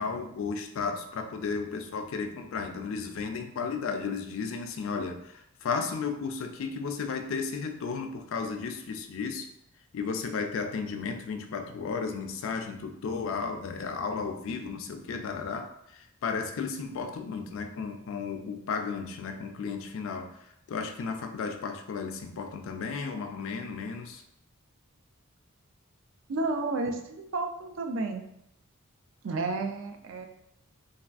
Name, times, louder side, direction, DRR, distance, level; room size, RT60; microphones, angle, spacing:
voice 1, 0.0-5.2 5.6-9.5 9.9-15.7 16.2-20.3 20.7-24.2, left 5 dB, 65° left, 5 dB, 0.3 m, -34 dB
voice 2, 26.3-28.2 29.2-30.3, right 3 dB, 60° right, 5 dB, 0.3 m, -31 dB
3.3 x 2.3 x 2.4 m, 0.77 s
head